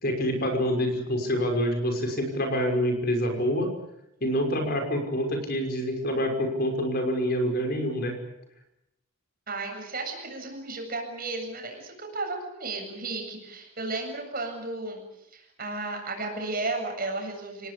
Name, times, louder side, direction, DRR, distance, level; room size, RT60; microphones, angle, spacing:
voice 1, 0.0-3.7 4.2-8.1, equal, 45° left, 4 dB, 5.9 m, -26 dB
voice 2, 9.5-15.0 15.3-17.7, right 3 dB, 40° right, 2 dB, 7.9 m, -34 dB
29.0 x 19.0 x 8.4 m, 0.83 s
head